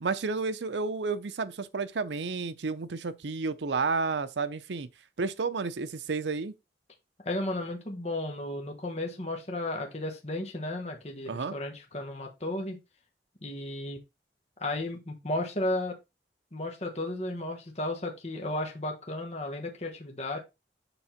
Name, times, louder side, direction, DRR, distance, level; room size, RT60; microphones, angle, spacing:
voice 1, 0.0-4.9 5.2-6.5 11.3-11.5, right 4 dB, 90° right, 0.6 m, -31 dB
voice 2, 7.2-12.8 13.4-14.0 14.6-16.0 16.5-20.4, left 1 dB, 40° left, 1.4 m, -34 dB
7.1 x 3.6 x 5.8 m
head